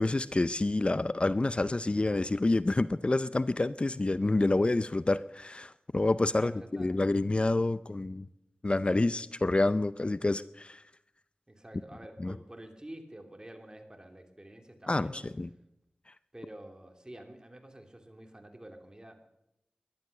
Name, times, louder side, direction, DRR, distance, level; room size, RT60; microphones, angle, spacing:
voice 1, 0.0-8.3 8.6-10.8 12.2-12.3 14.9-15.5, left 2 dB, 35° left, 16 dB, 0.5 m, -28 dB
voice 2, 6.3-7.0 11.5-15.3 16.3-19.3, right 1 dB, 25° right, 5 dB, 2.9 m, -48 dB
17.5 x 11.5 x 6.7 m, 0.84 s
cardioid pair, 40°, 3 cm